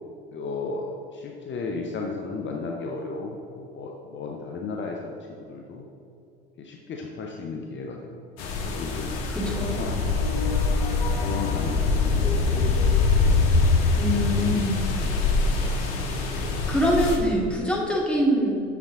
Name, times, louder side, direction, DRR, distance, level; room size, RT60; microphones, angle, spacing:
voice 1, 0.3-0.9 1.1-5.8 6.6-8.2 8.6-10.4 11.1-12.7 13.0-13.3 16.0-16.3, left 4 dB, 40° left, 1 dB, 0.9 m, -35 dB
sound 1, 8.4-17.2, left 3 dB, 65° left, 1.3 m, -25 dB
voice 2, 9.3-9.8 13.9-14.8 16.3-16.4 16.7-18.6, equal, 5° left, -3 dB, 2.1 m, -24 dB
sound 2, 9.4-14.6, left 4 dB, 90° left, 0.8 m, -25 dB
8.4 x 7.1 x 3.6 m, 2.6 s
hypercardioid pair, 70°, 29 cm